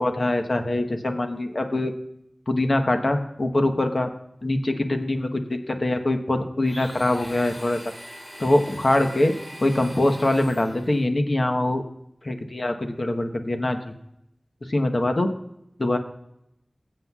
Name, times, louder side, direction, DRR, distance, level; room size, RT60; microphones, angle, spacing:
voice 1, 0.0-1.9 2.5-4.1 4.4-7.8 8.4-9.3 9.6-11.8 12.2-13.9 14.7-15.3 15.8-16.0, left 1 dB, 55° left, 5 dB, 1.1 m, -23 dB
Domestic sounds home sounds, 6.6-11.1, equal, 40° left, 4.3 m, -42 dB
20.5 x 7.7 x 2.4 m, 0.80 s
wide cardioid pair, 50°, 0 cm